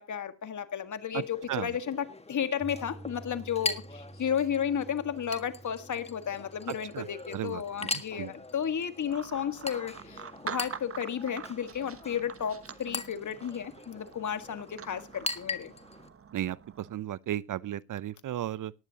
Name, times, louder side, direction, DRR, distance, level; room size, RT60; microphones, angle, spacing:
voice 1, 0.0-15.7, left 8 dB, 55° left, 1.7 m, -33 dB
Chink clink, 1.1-16.1, left 2 dB, 15° left, 1.7 m, -41 dB
Piano, 2.6-10.7, right 2 dB, 10° right, 1.1 m, -52 dB
voice 2, 6.7-7.1 7.3-7.9 8.2-8.3 16.3-18.7, right 12 dB, 60° right, 0.6 m, -34 dB
sound 1, 9.1-17.0, right 6 dB, 40° right, 1.2 m, -45 dB
18.5 x 10.5 x 2.9 m
supercardioid pair, 60°, 36 cm